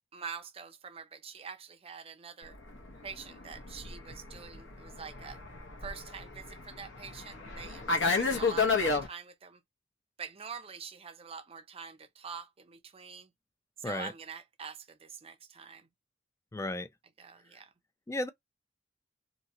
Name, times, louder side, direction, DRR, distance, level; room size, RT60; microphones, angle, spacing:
voice 1, 0.1-2.5 3.0-5.4 5.8-9.6 10.2-13.3 13.8-15.9 17.2-17.7, right 6 dB, 30° right, 0.5 m, -45 dB
Fixed-wing aircraft airplane, 2.6-9.1, left 4 dB, 70° left, 1.0 m, -32 dB
voice 2, 16.5-16.9 18.1-18.3, left 2 dB, 15° left, 0.4 m, -34 dB
2.9 x 2.7 x 2.8 m
head